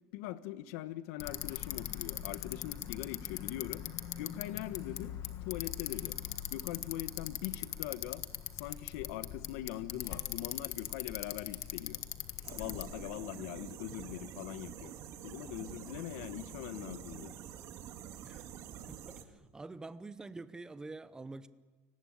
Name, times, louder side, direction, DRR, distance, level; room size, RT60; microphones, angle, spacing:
voice 1, 0.1-3.8 4.2-5.1 5.4-6.2 6.5-8.2 8.5-12.0 12.5-14.9 15.2-17.3, left 13 dB, 65° left, 12 dB, 1.3 m, -42 dB
Bicycle, 1.2-12.9, left 11 dB, 40° left, 1.5 m, -41 dB
sound 1, 12.4-19.2, right 9 dB, 40° right, 1.9 m, -47 dB
voice 2, 19.5-21.5, right 3 dB, 10° right, 13 dB, 0.8 m, -45 dB
29.5 x 19.0 x 8.8 m, 1.3 s
cardioid pair, 165°, 9 cm